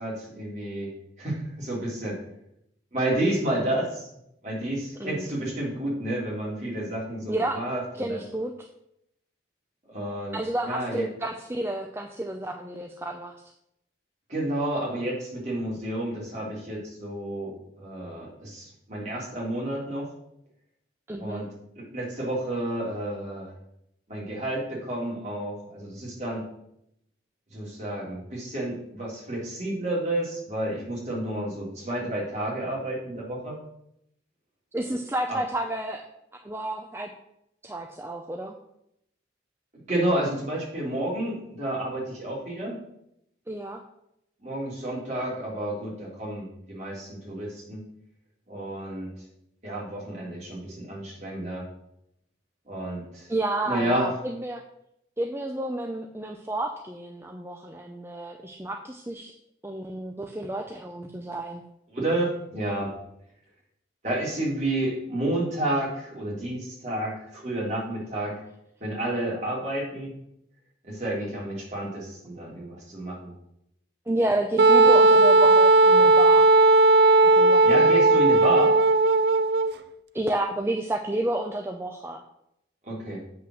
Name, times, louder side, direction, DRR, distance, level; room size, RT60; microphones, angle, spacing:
voice 1, 0.0-2.2 2.9-4.1 4.4-8.2 9.9-10.4 10.6-11.1 14.3-20.1 21.2-21.5 21.7-23.5 24.1-26.5 27.5-33.6 35.3-35.4 39.9-42.8 44.4-47.8 48.5-49.1 49.6-51.6 52.7-53.3 53.7-54.1 61.9-62.9 64.0-68.4 68.8-70.1 70.8-73.3 77.6-78.8 82.8-83.2, right 1 dB, 40° right, -4 dB, 3.4 m, -30 dB
voice 2, 7.3-7.6 8.0-8.7 10.3-13.3 21.1-21.4 34.7-36.0 36.4-37.1 37.6-38.6 43.5-43.8 53.3-54.6 55.2-59.3 59.6-61.6 74.1-76.5 77.4-78.0 80.1-82.2, right 1 dB, 15° right, 3 dB, 0.5 m, -30 dB
Wind instrument woodwind instrument, 74.6-79.7, right 2 dB, 60° right, 0.5 m, -16 dB
8.0 x 5.8 x 6.3 m, 0.78 s
head